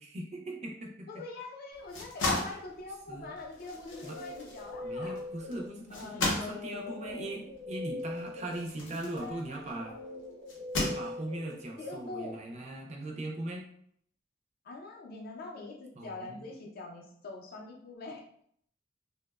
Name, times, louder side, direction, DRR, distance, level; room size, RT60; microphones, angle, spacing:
voice 1, 0.0-1.2 2.2-2.5 3.1-3.3 4.0-4.2 4.8-10.0 10.9-13.7 16.0-16.5, right 1 dB, 35° right, 1 dB, 0.4 m, -40 dB
voice 2, 1.1-5.2 5.9-7.3 8.9-10.0 11.8-12.4 14.6-18.2, left 3 dB, 55° left, 0 dB, 0.4 m, -43 dB
sound 1, 1.7-9.8 10.5-11.5, left 2 dB, 90° left, 0.7 m, -36 dB
Guitar, 3.5-6.1 6.8-12.3, left 2 dB, 90° right, 0.7 m, -43 dB
2.7 x 2.0 x 2.2 m, 0.67 s
head